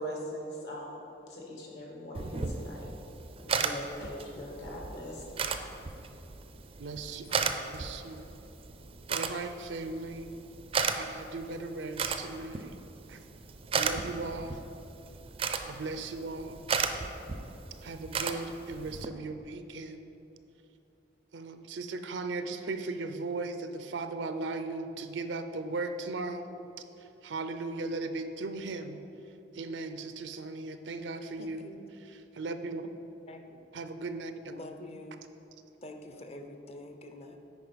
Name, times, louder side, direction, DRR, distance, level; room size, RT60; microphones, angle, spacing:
voice 1, 0.0-5.3 7.3-7.4, equal, 70° left, -3 dB, 1.9 m, -41 dB
sound 1, 2.1-19.1, right 5 dB, 30° right, 0.4 m, -36 dB
voice 2, 6.8-7.5 7.7-8.3 9.1-10.4 10.9-12.7 13.1-13.2 13.7-14.6 15.7-16.6 17.8-20.0 21.3-26.5 27.2-29.0 29.5-31.7 32.3-32.9 33.7-34.5, right 3 dB, 85° right, 9 dB, 0.5 m, -37 dB
voice 3, 31.4-31.9 33.3-33.6 34.5-35.3 35.8-37.4, left 1 dB, 35° left, 5 dB, 0.6 m, -46 dB
9.5 x 4.8 x 5.1 m, 2.9 s
head